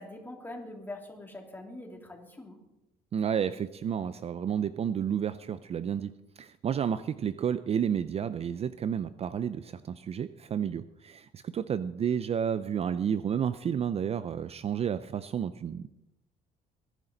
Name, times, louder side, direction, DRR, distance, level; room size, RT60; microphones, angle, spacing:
voice 1, 0.0-2.6, left 2 dB, 10° left, 1 dB, 3.0 m, -43 dB
voice 2, 3.1-15.9, right 8 dB, 40° right, 14 dB, 0.5 m, -31 dB
20.5 x 10.5 x 3.9 m, 0.92 s
cardioid pair, 110°, 17 cm